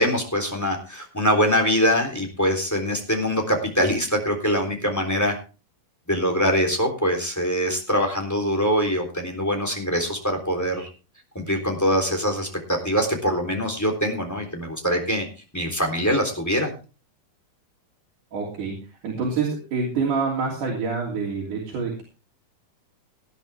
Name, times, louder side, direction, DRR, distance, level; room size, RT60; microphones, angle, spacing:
voice 1, 0.0-5.3 6.1-10.9 11.3-15.3 15.5-16.7, equal, 5° left, 3 dB, 3.2 m, -23 dB
voice 2, 18.3-18.8 19.0-22.0, right 4 dB, 85° right, -2 dB, 4.6 m, -26 dB
18.5 x 11.0 x 3.5 m, 0.34 s
omnidirectional pair, 3.5 m